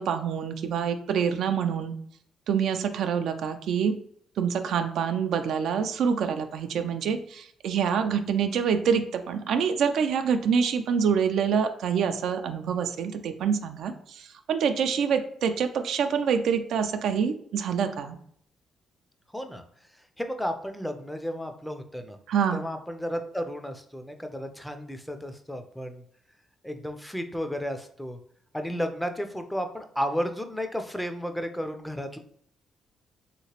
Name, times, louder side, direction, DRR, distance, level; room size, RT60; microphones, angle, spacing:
voice 1, 0.0-1.9 2.5-4.0 4.4-18.2 22.3-22.7, right 7 dB, 75° right, 7 dB, 0.3 m, -26 dB
voice 2, 20.2-22.2 22.5-26.0 26.6-28.2 28.5-32.2, equal, 5° left, 7 dB, 0.4 m, -33 dB
3.1 x 2.9 x 2.9 m, 0.64 s
cardioid pair, 90°, 0 cm